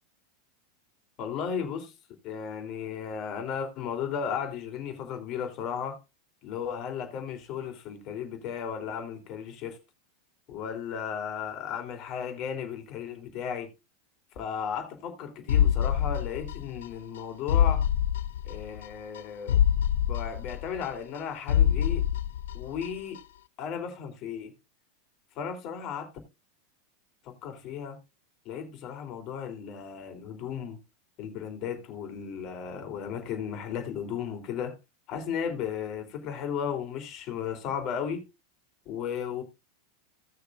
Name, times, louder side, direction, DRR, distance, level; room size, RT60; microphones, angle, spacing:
voice 1, 1.2-1.9 2.2-6.0 6.4-9.8 10.5-13.7 14.3-17.9 18.4-19.6 20.1-22.0 22.5-23.2 23.6-24.5 25.3-26.1 27.2-28.0 28.4-30.8 31.2-34.8 35.1-38.2 38.8-39.4, left 7 dB, 45° left, 3.1 m, -35 dB
sound 1, 15.5-16.9 17.2-17.3 17.5-18.9 19.2-19.3 19.5-21.2 21.5-22.9 23.2-23.3, left 10 dB, 80° left, 0.5 m, -25 dB
17.5 x 6.8 x 2.5 m
hypercardioid pair, 105°, 0 cm